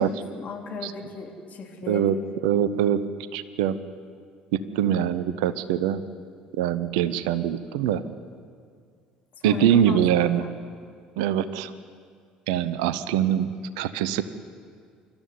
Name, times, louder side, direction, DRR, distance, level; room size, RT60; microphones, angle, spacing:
voice 1, 0.0-2.1 9.4-10.5, left 4 dB, 45° left, 1 dB, 3.4 m, -36 dB
voice 2, 1.9-2.2 2.4-3.0 3.3-3.8 4.5-6.0 6.6-8.0 9.4-10.5 11.2-11.7 12.5-14.2, right 10 dB, 65° right, 15 dB, 0.8 m, -23 dB
26.0 x 13.0 x 9.6 m, 2.1 s
figure-of-eight pair, 55°, 4 cm